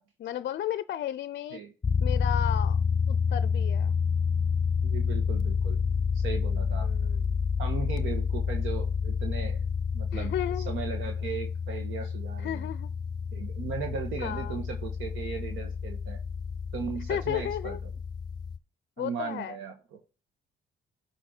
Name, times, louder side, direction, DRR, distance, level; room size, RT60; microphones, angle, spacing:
voice 1, 0.2-1.6 2.0-2.8 3.1-3.9 6.8-7.3 10.1-10.7 12.4-12.9 14.2-14.6 17.1-17.8 19.0-19.6, left 11 dB, 55° left, 0.5 m, -34 dB
sound 1, 1.8-18.6, left 6 dB, 20° left, 0.8 m, -29 dB
voice 2, 4.8-5.8 6.1-6.9 7.6-9.7 9.9-10.3 10.7-12.7 13.3-16.2 16.7-17.8 19.0-19.7, right 6 dB, 90° right, 1.5 m, -37 dB
10.5 x 3.8 x 4.4 m
cardioid pair, 90°, 20 cm